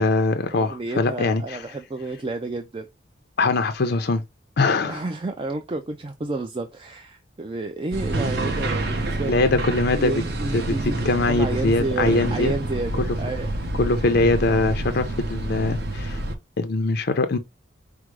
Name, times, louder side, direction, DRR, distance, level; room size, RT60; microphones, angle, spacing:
voice 1, 0.0-1.6 3.4-4.2 4.6-5.0 9.3-10.2 10.5-10.8 11.0-12.5 13.0-13.1 13.8-16.2 16.6-17.4, left 3 dB, 55° left, 0.5 m, -22 dB
voice 2, 0.5-2.9 4.8-9.3 9.9-11.0 11.3-13.5, right 2 dB, 25° right, 0.4 m, -30 dB
sound 1, 7.9-16.3, right 1 dB, 55° right, 0.9 m, -28 dB
4.9 x 2.0 x 4.5 m
head